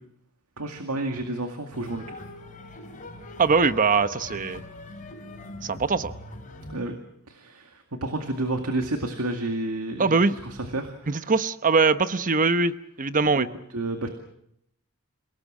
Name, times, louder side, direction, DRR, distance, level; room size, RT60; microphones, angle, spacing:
voice 1, 0.6-2.3 6.7-6.9 7.3-11.3 13.3-13.5 13.7-14.1, right 2 dB, 90° right, 5 dB, 2.1 m, -31 dB
sound 1, 1.7-6.8, left 2 dB, 35° left, 4.7 m, -41 dB
voice 2, 3.4-4.6 5.6-6.1 10.0-10.3 11.1-13.5, right 4 dB, 40° right, 12 dB, 0.9 m, -22 dB
28.0 x 18.5 x 7.5 m, 0.77 s
head